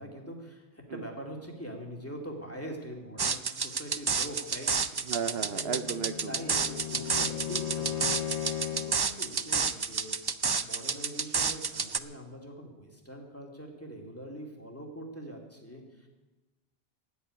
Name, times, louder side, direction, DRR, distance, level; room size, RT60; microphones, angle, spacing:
voice 1, 0.0-5.8 6.3-8.4 8.7-10.2 10.6-16.1, equal, 10° left, 0 dB, 2.4 m, -43 dB
sound 1, 3.2-12.0, right 5 dB, 40° right, 0.3 m, -30 dB
voice 2, 5.1-6.4, right 7 dB, 70° right, 10 dB, 0.9 m, -34 dB
Bowed string instrument, 5.2-9.1, left 10 dB, 45° left, 0.5 m, -37 dB
13.0 x 8.4 x 9.6 m, 1.1 s
omnidirectional pair, 1.1 m